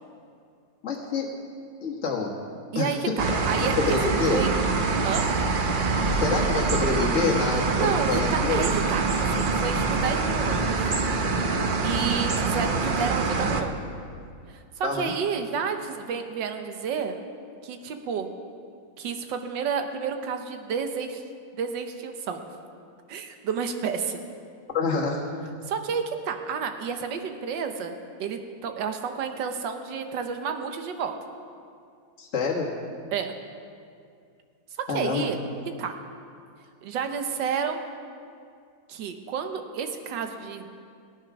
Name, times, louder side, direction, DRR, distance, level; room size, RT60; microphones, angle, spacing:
voice 1, 0.8-1.3 1.8-2.3 2.8-3.1 3.8-4.4 6.1-8.6 14.8-15.1 24.7-25.3 32.2-32.7 34.9-35.3, left 4 dB, 40° left, -3 dB, 1.6 m, -27 dB
voice 2, 2.7-4.0 4.3-4.5 5.0-5.3 7.8-9.1 9.4-10.9 11.8-13.8 14.5-17.2 17.6-18.3 19.0-21.2 21.5-22.5 23.1-24.2 25.7-27.9 28.2-31.2 33.1-33.3 34.9-35.4 35.8-35.9 36.8-37.8 38.9-40.7, right 6 dB, 75° right, 6 dB, 1.6 m, -30 dB
sound 1, 3.2-13.6, right 4 dB, 55° right, 0.5 m, -25 dB
17.5 x 9.3 x 6.0 m, 2.3 s
omnidirectional pair, 2.0 m